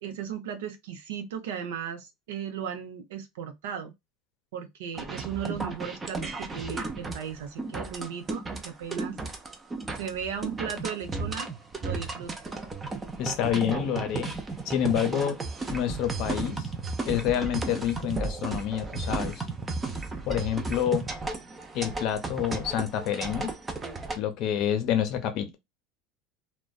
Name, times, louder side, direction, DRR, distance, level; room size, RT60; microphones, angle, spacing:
voice 1, 0.0-3.9 4.5-9.2 10.0-11.5 11.8-12.3, right 8 dB, 85° right, 0.6 m, -36 dB
sound 1, 4.9-24.2, right 3 dB, 20° right, 0.5 m, -34 dB
voice 2, 13.2-14.3 14.7-15.4 15.7-16.7 17.1-19.4 20.2-21.1 21.7-23.5 24.1-25.6, left 10 dB, 55° left, 0.6 m, -28 dB
2.5 x 2.1 x 2.3 m
supercardioid pair, 125°, 0 cm